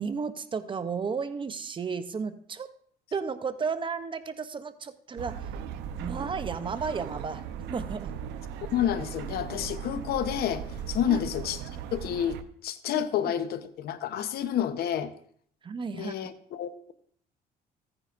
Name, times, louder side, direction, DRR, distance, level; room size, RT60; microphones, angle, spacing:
voice 1, 0.0-2.7 3.1-5.4 6.0-7.4 7.7-8.1 11.0-11.2 12.9-13.0 15.6-16.1, right 5 dB, 30° right, 11 dB, 0.6 m, -33 dB
sound 1, 5.2-12.4, right 8 dB, 90° right, 0.7 m, -38 dB
voice 2, 8.7-11.6 11.9-15.1 15.9-16.9, left 10 dB, 70° left, 11 dB, 0.8 m, -29 dB
15.0 x 9.6 x 2.5 m, 0.62 s
cardioid pair, 110°, 17 cm